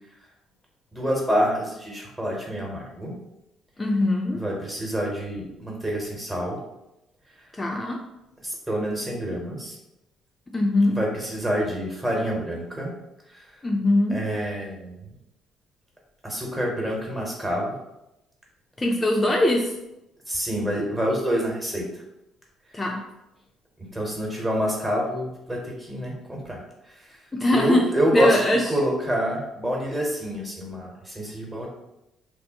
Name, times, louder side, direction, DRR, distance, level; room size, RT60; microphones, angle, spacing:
voice 1, 0.9-3.1 4.3-6.6 8.4-9.8 10.9-12.9 13.3-13.4 14.1-15.1 16.2-17.7 20.3-21.8 23.8-27.2 27.5-31.7, equal, 15° right, -1 dB, 0.9 m, -27 dB
voice 2, 3.8-4.4 7.6-8.0 10.5-11.0 13.6-14.2 18.8-19.7 22.7-23.0 27.3-28.7, left 1 dB, 20° left, 0 dB, 0.3 m, -22 dB
2.9 x 2.0 x 2.8 m, 0.89 s
figure-of-eight pair, 45°, 0 cm